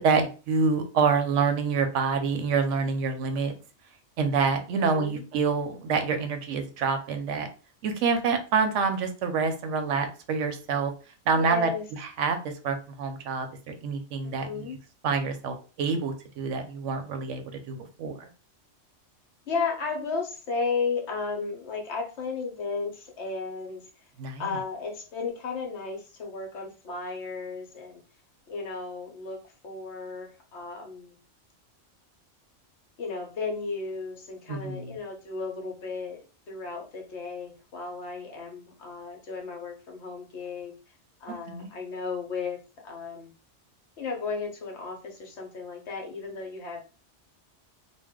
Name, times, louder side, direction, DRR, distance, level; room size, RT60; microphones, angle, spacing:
voice 1, 0.0-3.5 4.2-7.5 7.8-10.9 11.3-11.7 12.0-12.4 12.6-14.7 15.0-18.3 24.2-24.6 34.5-35.0 41.5-41.7, right 5 dB, 80° right, 7 dB, 0.9 m, -27 dB
voice 2, 4.7-5.2 11.4-11.9 14.2-14.8 19.5-23.8 24.4-27.9 28.5-31.2 33.0-40.7 41.2-42.6 42.8-43.3 44.0-46.9, left 4 dB, 65° left, 1 dB, 1.1 m, -34 dB
2.6 x 2.2 x 3.5 m, 0.35 s
omnidirectional pair, 1.3 m